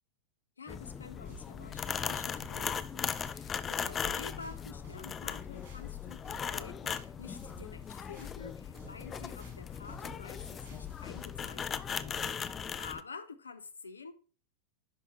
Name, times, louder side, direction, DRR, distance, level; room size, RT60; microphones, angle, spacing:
voice 1, 0.6-14.1, left 4 dB, 75° left, 0.6 m, -49 dB
sound 1, 0.7-13.0, left 7 dB, 20° left, 0.4 m, -38 dB
sound 2, 1.2-11.3, right 5 dB, 65° right, 2.7 m, -57 dB
10.5 x 3.4 x 3.0 m
figure-of-eight pair, 90°, 0 cm